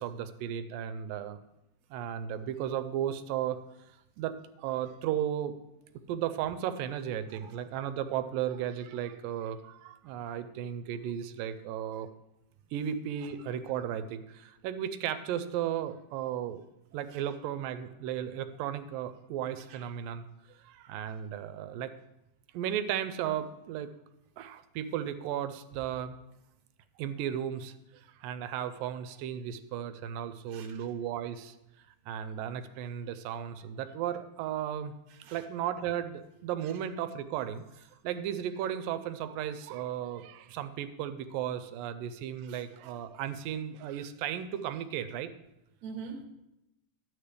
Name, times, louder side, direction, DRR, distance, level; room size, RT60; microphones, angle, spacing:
voice 1, 0.0-1.4 1.9-3.6 4.2-5.5 6.1-12.1 12.7-16.6 16.9-21.9 22.5-23.9 24.4-26.2 27.0-31.6 32.1-34.9 35.3-45.3, right 10 dB, 80° right, 11 dB, 2.2 m, -35 dB
voice 2, 45.8-46.2, right 5 dB, 65° right, 2 dB, 2.0 m, -44 dB
12.5 x 9.3 x 3.4 m, 0.88 s
omnidirectional pair, 4.1 m